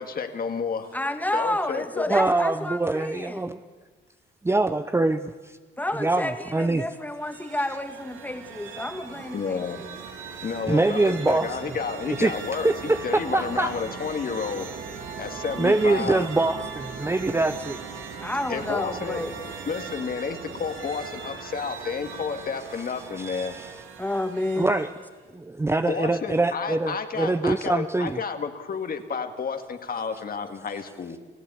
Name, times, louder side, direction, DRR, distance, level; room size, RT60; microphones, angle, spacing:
voice 1, 0.0-0.9 1.3-2.2 9.3-9.8 10.4-14.7 15.2-16.3 18.5-19.2 19.7-23.6 25.9-31.2, left 6 dB, 50° left, 6 dB, 2.0 m, -31 dB
voice 2, 0.9-3.6 5.8-9.9 18.2-19.3 24.0-24.7, left 1 dB, 10° left, 6 dB, 2.3 m, -30 dB
voice 3, 2.1-3.6 4.5-5.6 6.0-6.9 10.2-11.6 12.1-12.3 12.6-13.7 15.6-17.8 23.3-23.7 24.6-24.9 25.3-28.2, right 2 dB, 15° right, 10 dB, 0.7 m, -24 dB
sound 1, 7.0-25.2, right 5 dB, 80° right, 3.3 m, -39 dB
29.0 x 15.5 x 8.6 m, 1.4 s
cardioid pair, 90°, 20 cm